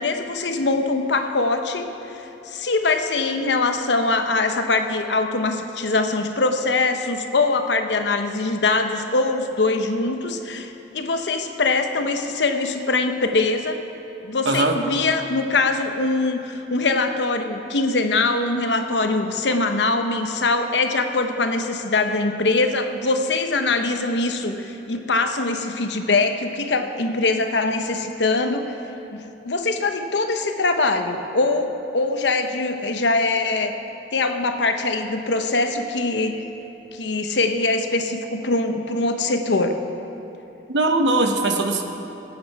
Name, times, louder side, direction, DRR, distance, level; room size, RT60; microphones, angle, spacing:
voice 1, 0.0-1.9 2.5-13.8 14.2-28.7 29.1-33.7 34.1-36.4 36.9-39.7, left 3 dB, 75° left, 6 dB, 0.9 m, -22 dB
voice 2, 14.4-14.8 40.7-41.8, right 2 dB, 75° right, 4 dB, 1.0 m, -20 dB
18.0 x 8.7 x 4.7 m, 3.0 s
head